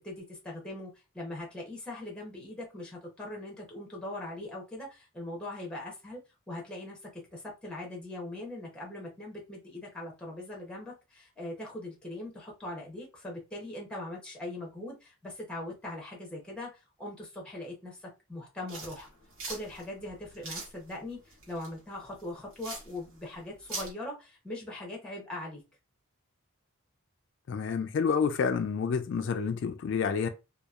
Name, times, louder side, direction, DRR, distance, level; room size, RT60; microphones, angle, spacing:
voice 1, 0.0-6.2 6.5-19.1 19.5-25.6, left 1 dB, 5° left, 0.7 m, -41 dB
sound 1, 18.7-23.9, right 3 dB, 70° right, 1.2 m, -42 dB
voice 2, 27.5-30.3, left 6 dB, 60° left, 0.3 m, -29 dB
2.8 x 2.3 x 2.3 m
head